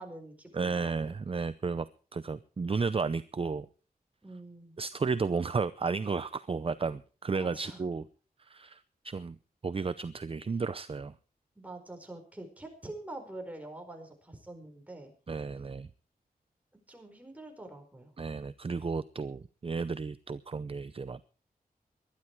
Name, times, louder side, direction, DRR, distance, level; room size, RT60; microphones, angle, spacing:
voice 1, 0.0-1.2 4.2-4.8 7.3-7.8 11.5-15.1 16.9-18.1, right 2 dB, 10° right, 4.7 m, -45 dB
voice 2, 0.5-1.9 2.1-3.7 4.8-8.0 8.4-9.4 9.6-11.1 15.3-15.9 18.2-21.2, right 4 dB, 35° right, 0.6 m, -33 dB
20.0 x 12.0 x 4.6 m
wide cardioid pair, 135°, 16 cm